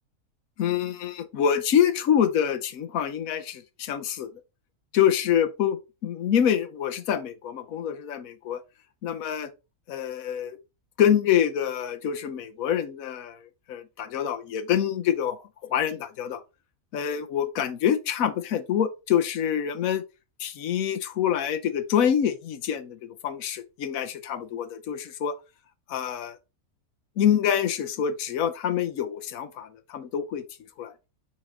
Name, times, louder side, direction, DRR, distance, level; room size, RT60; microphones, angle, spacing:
voice 1, 0.6-4.3 4.9-8.6 9.0-9.5 9.9-10.6 11.0-15.4 15.7-16.4 16.9-20.0 20.4-25.3 25.9-26.4 27.2-30.4 30.8-30.9, left 9 dB, 80° left, 1.2 m, -26 dB
6.2 x 3.7 x 4.4 m
omnidirectional pair, 1.5 m